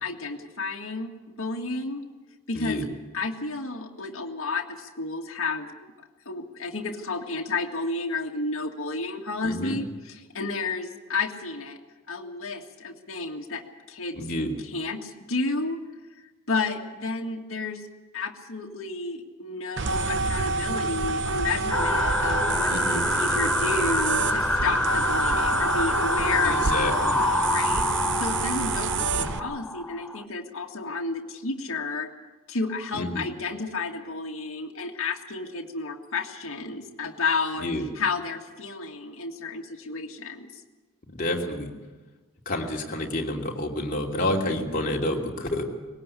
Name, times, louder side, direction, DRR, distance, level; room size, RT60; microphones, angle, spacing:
voice 1, 0.0-2.0 2.5-2.8 3.1-5.7 6.3-11.8 12.1-14.2 14.7-15.8 16.5-17.8 18.1-27.1 27.5-32.1 32.5-37.7 38.0-40.6, left 3 dB, 70° left, 1 dB, 1.9 m, -31 dB
voice 2, 2.5-2.9 9.4-9.8 14.1-14.5 22.7-23.0 26.4-27.2 29.1-29.3 32.9-33.2 37.6-37.9 41.1-41.7 42.4-45.6, left 1 dB, 40° left, -1 dB, 2.9 m, -29 dB
sound 1, 19.8-29.4, right 4 dB, 55° right, 0.8 m, -28 dB
sound 2, 21.7-30.2, left 1 dB, 5° left, 0.6 m, -26 dB
20.0 x 18.0 x 8.4 m, 1.2 s
head